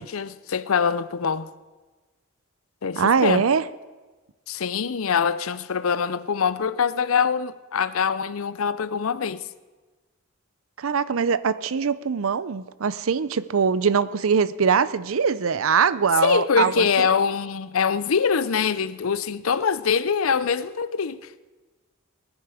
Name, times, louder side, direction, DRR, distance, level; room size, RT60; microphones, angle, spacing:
voice 1, 0.0-1.5 2.8-3.4 4.5-9.4 16.2-21.3, left 6 dB, 80° left, 0.6 m, -24 dB
voice 2, 3.0-3.6 10.8-17.1, right 6 dB, 75° right, 0.5 m, -22 dB
19.5 x 10.5 x 4.9 m
head